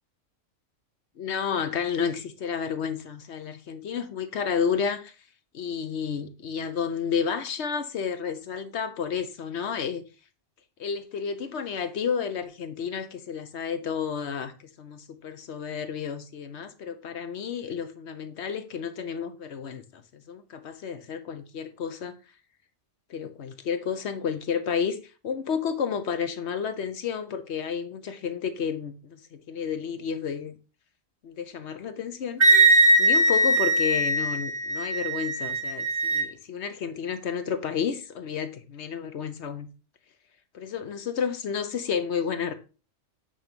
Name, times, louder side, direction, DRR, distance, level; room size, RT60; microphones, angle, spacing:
voice 1, 1.2-5.1 5.5-10.0 10.8-14.5 14.8-20.0 20.3-22.1 23.1-25.0 25.2-30.5 31.2-32.4 33.0-39.7 40.5-42.5, left 7 dB, 65° left, 1.0 m, -31 dB
Wind instrument woodwind instrument, 32.4-36.3, right 2 dB, 35° right, 1.2 m, -21 dB
8.9 x 3.0 x 5.2 m
omnidirectional pair, 1.3 m